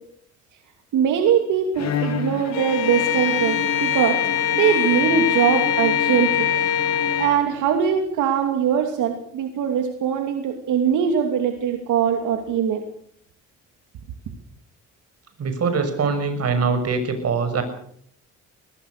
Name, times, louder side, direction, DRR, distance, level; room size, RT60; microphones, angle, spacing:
voice 1, 0.9-4.2 4.5-6.5 7.2-12.8, right 8 dB, 85° right, 5 dB, 2.7 m, -22 dB
Bowed string instrument, 1.7-7.8, left 6 dB, 60° left, 3.8 m, -31 dB
Bowed string instrument 2, 2.5-7.4, left 9 dB, 85° left, 2.4 m, -23 dB
voice 2, 15.4-17.6, right 5 dB, 55° right, 8 dB, 6.6 m, -23 dB
23.0 x 20.0 x 6.7 m, 0.66 s
cardioid pair, 90°, 30 cm